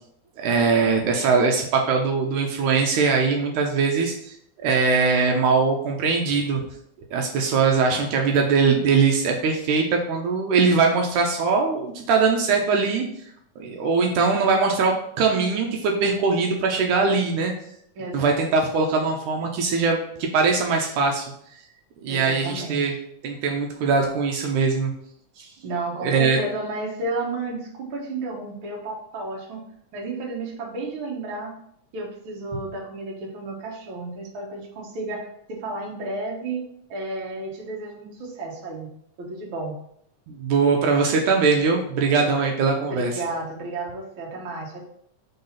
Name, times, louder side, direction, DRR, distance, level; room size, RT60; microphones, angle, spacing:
voice 1, 0.4-6.6 7.1-13.1 13.6-17.5 18.1-21.3 22.0-22.9 23.2-24.9 25.4-25.5 26.0-26.4 40.3-43.1, right 4 dB, 75° right, 2 dB, 2.2 m, -21 dB
voice 2, 18.0-18.4 22.1-22.9 25.6-29.6 29.9-31.5 31.9-36.6 36.9-38.9 39.2-39.7 42.9-44.8, right 2 dB, 50° right, -2 dB, 1.8 m, -32 dB
4.8 x 4.0 x 5.6 m, 0.70 s
omnidirectional pair, 3.6 m